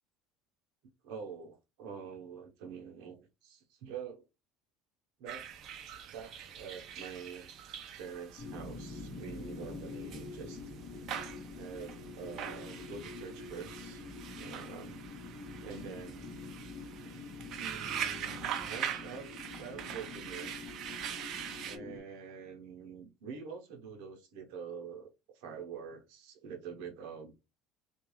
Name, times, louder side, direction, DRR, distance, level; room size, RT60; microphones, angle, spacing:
voice 1, 1.0-4.2 5.2-5.5 5.8-7.5 8.0-10.6 11.6-14.0 14.4-15.0 15.6-16.2 17.6-20.5 21.6-25.1 25.3-27.3, right 6 dB, 75° right, 0.8 m, -46 dB
sound 1, 5.3-21.8, right 9 dB, 40° right, 0.4 m, -43 dB
sound 2, 8.4-22.0, left 3 dB, 35° left, 0.9 m, -46 dB
2.3 x 2.2 x 3.1 m
cardioid pair, 175°, 0 cm